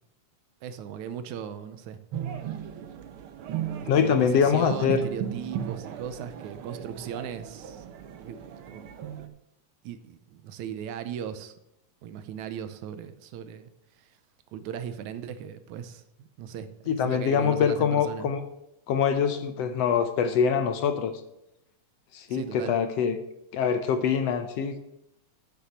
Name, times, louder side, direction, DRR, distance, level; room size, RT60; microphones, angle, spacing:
voice 1, 0.6-2.0 3.6-8.4 8.7-8.9 9.8-11.5 12.0-13.7 14.0-14.1 14.5-16.7 17.0-18.3 22.3-22.7, right 8 dB, 90° right, 11 dB, 2.2 m, -38 dB
sound 1, 2.1-9.3, right 9 dB, 65° right, 1.4 m, -37 dB
voice 2, 3.9-5.0 16.9-18.4 18.9-21.1 22.1-23.2 23.5-24.8, left 7 dB, 70° left, 8 dB, 1.6 m, -24 dB
7.8 x 6.8 x 7.9 m, 0.83 s
omnidirectional pair, 3.4 m